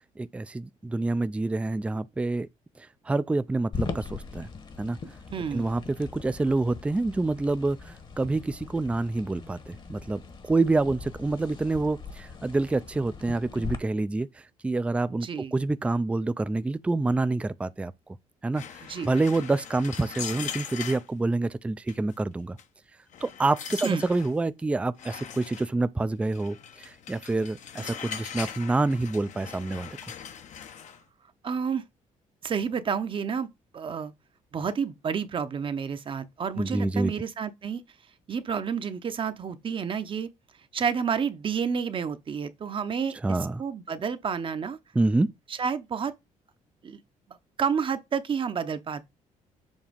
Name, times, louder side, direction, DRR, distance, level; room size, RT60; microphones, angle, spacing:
voice 1, 0.2-2.5 3.1-4.5 4.8-5.0 5.5-14.3 14.6-17.9 18.4-18.6 19.0-22.6 23.2-29.9 36.6-37.1 43.2-43.6 45.0-45.3, right 2 dB, 10° right, 0.3 m, -27 dB
sound 1, 3.7-13.8, left 4 dB, 35° left, 1.1 m, -40 dB
voice 2, 5.3-5.7 15.1-15.5 18.9-19.1 23.8-24.0 31.4-31.8 32.4-33.5 33.7-34.1 34.5-37.8 38.3-40.3 40.7-44.8 45.5-46.1 46.8-47.0 47.6-49.0, right 6 dB, 40° right, 0.7 m, -30 dB
sound 2, 18.5-21.1 21.9-22.1 22.6-22.7 23.1-24.3 25.0-25.7 26.3-31.0, left 8 dB, 65° left, 0.8 m, -40 dB
7.3 x 2.8 x 5.1 m
cardioid pair, 105°, 14 cm